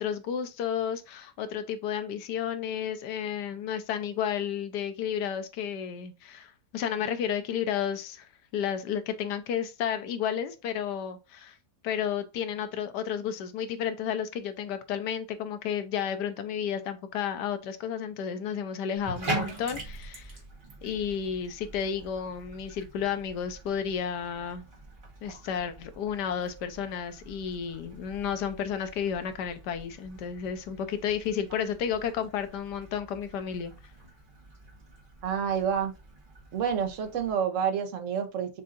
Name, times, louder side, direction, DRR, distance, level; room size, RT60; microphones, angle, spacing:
voice 1, 0.0-11.6 11.8-20.4 20.8-24.7 25.2-33.7, left 8 dB, 85° left, 1.3 m, -32 dB
Bathtub (filling or washing), 19.0-37.3, right 2 dB, 35° right, 1.3 m, -43 dB
voice 2, 35.2-35.9 36.5-38.6, right 7 dB, 55° right, 1.1 m, -28 dB
6.4 x 2.7 x 2.5 m
omnidirectional pair, 1.8 m